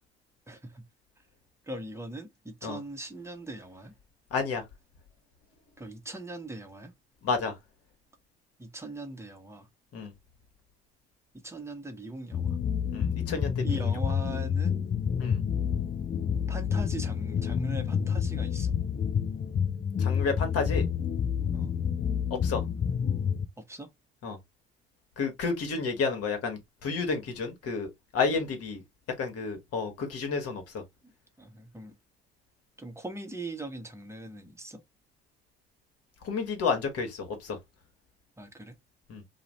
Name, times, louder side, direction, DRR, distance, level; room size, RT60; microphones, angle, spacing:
voice 1, 0.5-0.8 1.7-3.9 5.8-6.9 8.6-9.7 11.4-12.6 13.6-14.8 16.5-18.7 21.5-21.7 23.7-23.9 31.0-31.1 31.4-31.9 32.8-34.8 38.4-38.7, right 2 dB, 10° right, 0.7 m, -40 dB
voice 2, 4.3-4.6 7.2-7.6 9.9-10.1 12.9-14.0 15.2-15.4 20.0-20.9 22.4-22.6 24.2-24.4 25.2-28.8 29.2-30.8 36.2-37.6 39.1-39.2, left 4 dB, 55° left, 1.0 m, -31 dB
sound 1, 12.3-23.5, left 7 dB, 25° left, 0.4 m, -29 dB
2.4 x 2.1 x 3.0 m
figure-of-eight pair, 50°, 29 cm